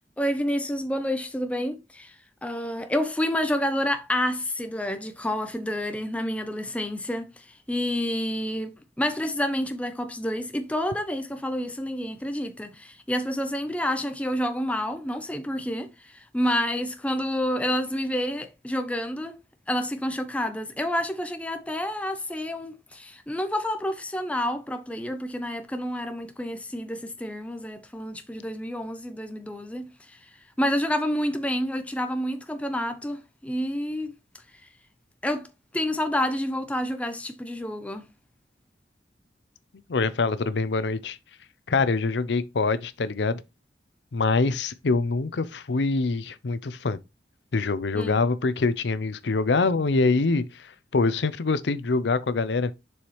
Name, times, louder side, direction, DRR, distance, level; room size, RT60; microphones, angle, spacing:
voice 1, 0.2-34.8 35.2-38.1 47.9-48.2, equal, 10° left, 0.6 m, -29 dB
voice 2, 39.9-41.2 41.7-43.4 44.1-47.0 47.5-52.7, left 3 dB, 80° left, 0.6 m, -24 dB
7.1 x 4.7 x 3.1 m
head